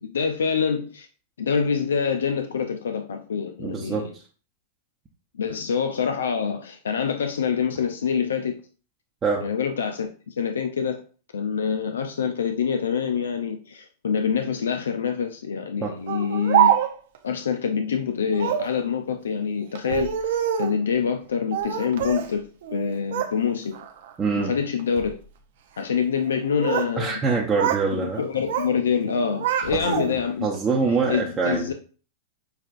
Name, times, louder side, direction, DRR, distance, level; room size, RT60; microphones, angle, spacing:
voice 1, 0.0-1.1 1.4-4.1 5.3-8.5 9.4-11.0 11.3-16.7 17.2-20.3 20.6-23.7 24.4-25.2 25.8-27.2 27.9-30.5 31.1-31.7, left 6 dB, 90° left, 0.4 m, -26 dB
voice 2, 3.6-4.2 9.2-9.4 15.8-15.9 24.2-24.5 27.0-28.2 29.7-30.0 30.4-31.7, right 4 dB, 20° right, 0.8 m, -24 dB
Speech, 16.1-17.2 18.3-18.8 19.8-20.8 21.5-22.3 22.6-23.4 23.7-24.1 24.8-25.1 26.2-27.0 27.2-27.9 28.2-28.7 29.1-30.3, right 10 dB, 70° right, 0.6 m, -25 dB
6.4 x 2.5 x 2.5 m
hypercardioid pair, 115°, 0 cm